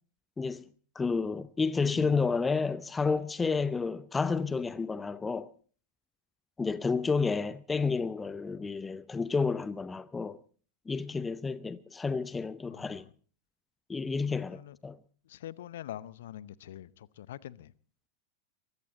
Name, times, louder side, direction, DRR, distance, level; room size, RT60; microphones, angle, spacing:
voice 1, 1.0-5.5 6.6-10.4 10.9-13.0 13.9-15.0, left 4 dB, 15° left, 0.7 m, -30 dB
voice 2, 1.8-2.3 12.7-13.1 14.3-14.8 15.2-17.7, left 12 dB, 60° left, 0.7 m, -45 dB
23.0 x 15.0 x 4.1 m
figure-of-eight pair, 90°, 0 cm